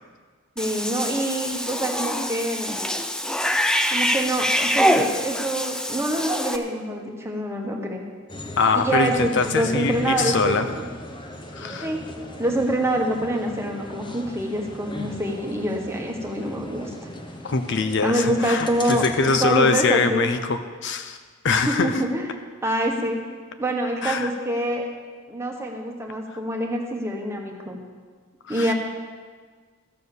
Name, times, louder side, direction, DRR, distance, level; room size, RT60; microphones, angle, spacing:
Cat / Bathtub (filling or washing), 0.6-6.6, equal, 5° left, 0.4 m, -24 dB
voice 1, 0.6-2.8 3.9-8.0 8.7-10.9 11.8-12.0 12.4-16.9 18.0-20.3 21.6-22.3 22.6-23.2 23.6-24.8 25.3-27.8 28.5-28.7, right 1 dB, 15° right, 1 dB, 1.4 m, -26 dB
sound 1, 8.3-19.6, left 1 dB, 25° left, 0.9 m, -37 dB
voice 2, 8.6-10.7 11.6-11.9 17.4-21.2 21.4-22.0 24.0-24.3 28.5-28.7, left 4 dB, 55° left, 8 dB, 0.6 m, -23 dB
14.0 x 6.7 x 6.8 m, 1.5 s
head